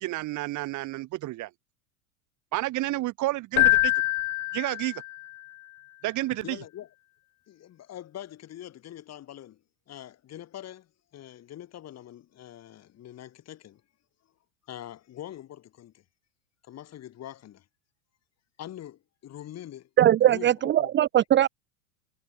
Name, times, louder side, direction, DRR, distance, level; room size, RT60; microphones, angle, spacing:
voice 1, 0.0-1.5 2.5-3.9 4.5-5.0 6.0-6.6, right 17 dB, 45° right, 3.0 m, -30 dB
Keyboard (musical), 3.6-5.4, left 17 dB, 70° left, 0.6 m, -24 dB
voice 2, 6.4-6.9 7.5-9.6 9.9-10.9 11.1-13.8 14.7-16.0 16.6-17.6 18.6-19.9 20.3-20.9, left 12 dB, 35° left, 7.9 m, -43 dB
voice 3, 20.0-21.5, right 12 dB, 25° right, 0.9 m, -20 dB
hypercardioid pair, 90°, 42 cm